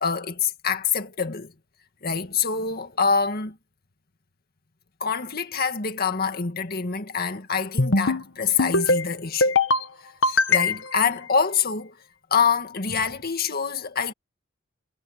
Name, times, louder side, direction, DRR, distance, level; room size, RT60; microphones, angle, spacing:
voice 1, 0.0-1.5 2.0-3.6 5.0-9.5 10.2-12.0 12.3-14.1, left 6 dB, 50° left, 2.1 m, -25 dB
sound 1, 7.8-8.2 8.6-9.0 9.4-9.8 10.2-11.0, left 3 dB, 65° left, 1.6 m, -21 dB
head